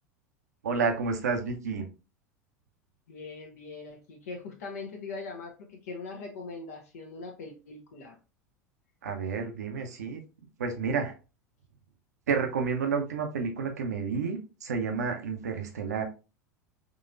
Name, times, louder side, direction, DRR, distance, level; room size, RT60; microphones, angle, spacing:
voice 1, 0.6-1.9 9.0-10.2 10.6-11.1 12.3-16.0, right 5 dB, 70° right, 4 dB, 0.7 m, -30 dB
voice 2, 3.1-8.2, left 3 dB, 65° left, 2 dB, 0.7 m, -41 dB
3.8 x 3.0 x 2.4 m, 0.30 s
figure-of-eight pair, 80°, 9 cm